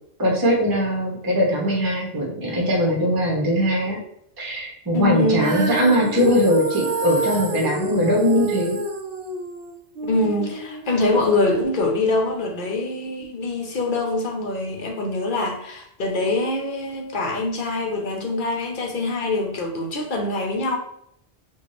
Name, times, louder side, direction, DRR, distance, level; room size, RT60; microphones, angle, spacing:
voice 1, 0.2-4.0 4.4-8.8, equal, 25° right, -2 dB, 0.8 m, -21 dB
voice 2, 4.9-5.6 10.0-20.8, left 2 dB, 55° left, 1 dB, 0.8 m, -24 dB
Female singing, 5.4-11.6, right 2 dB, 70° right, 0.9 m, -28 dB
4.5 x 2.3 x 3.0 m, 0.73 s
omnidirectional pair, 1.1 m